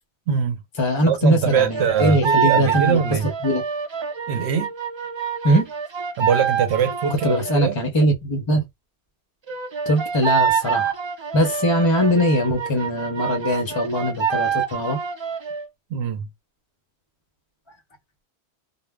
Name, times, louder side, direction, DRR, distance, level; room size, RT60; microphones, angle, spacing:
voice 1, 0.3-0.6 1.1-3.3 4.3-4.7 6.2-7.8 15.9-16.3, right 7 dB, 80° right, 0.8 m, -22 dB
voice 2, 0.8-3.6 5.4-5.7 7.1-8.7 9.9-10.9 11.3-15.0 17.7-17.8, equal, 35° left, 0.5 m, -21 dB
sound 1, 1.5-7.7 9.5-15.7, right 7 dB, 40° right, 0.4 m, -26 dB
2.0 x 2.0 x 3.4 m
omnidirectional pair, 1.1 m